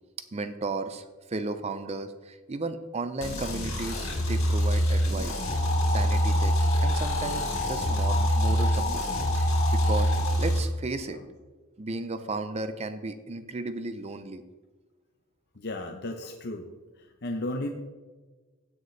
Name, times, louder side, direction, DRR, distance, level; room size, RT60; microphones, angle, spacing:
voice 1, 0.3-5.4 5.8-9.1 9.3-11.2 11.8-14.4, right 3 dB, 30° right, 10 dB, 0.5 m, -35 dB
sound 1, 3.2-10.6, equal, 80° left, 3.0 m, -25 dB
sound 2, 5.3-10.3, left 3 dB, 30° left, 1.5 m, -32 dB
voice 2, 6.2-6.6 11.1-11.2 15.6-16.7 17.0-17.7, left 1 dB, 50° left, 3 dB, 0.7 m, -35 dB
16.0 x 6.7 x 3.2 m, 1.3 s
head